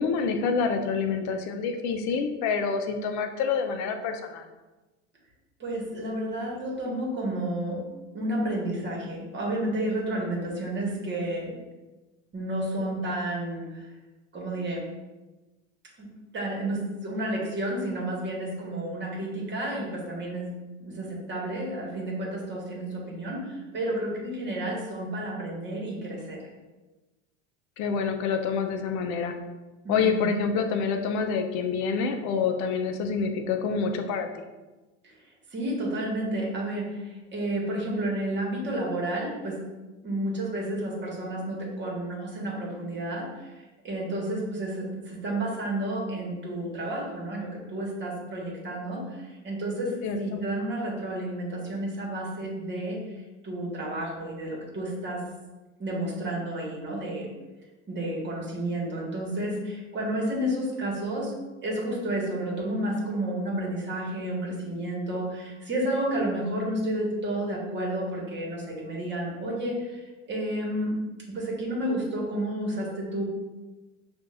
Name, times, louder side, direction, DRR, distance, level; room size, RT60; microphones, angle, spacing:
voice 1, 0.0-4.4 27.8-29.3 29.9-34.4 50.0-50.4, left 5 dB, 50° left, 6 dB, 0.6 m, -27 dB
voice 2, 5.6-7.8 8.1-11.6 12.3-13.8 14.3-14.8 16.0-16.1 16.3-20.5 20.8-26.4 29.8-30.3 35.0-35.1 35.5-39.6 40.0-43.5 43.8-53.0 53.4-55.2 55.8-57.3 57.9-61.3 61.6-70.0 70.3-70.9 71.3-73.2, right 1 dB, 30° right, -2 dB, 1.5 m, -31 dB
6.1 x 2.6 x 2.5 m, 1.2 s
supercardioid pair, 100°, 38 cm